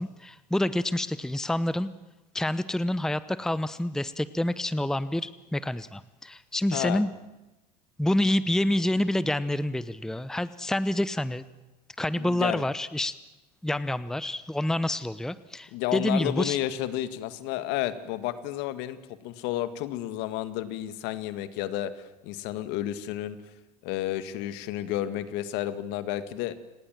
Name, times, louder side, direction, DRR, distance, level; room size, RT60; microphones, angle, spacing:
voice 1, 0.0-1.9 2.3-7.1 8.0-11.4 12.0-13.2 13.6-16.6, left 1 dB, ahead, 16 dB, 0.9 m, -28 dB
voice 2, 6.7-7.0 12.1-12.6 15.7-23.4 23.8-26.5, left 13 dB, 60° left, 12 dB, 1.9 m, -31 dB
29.5 x 19.0 x 7.5 m, 1.1 s
hypercardioid pair, 75°, 21 cm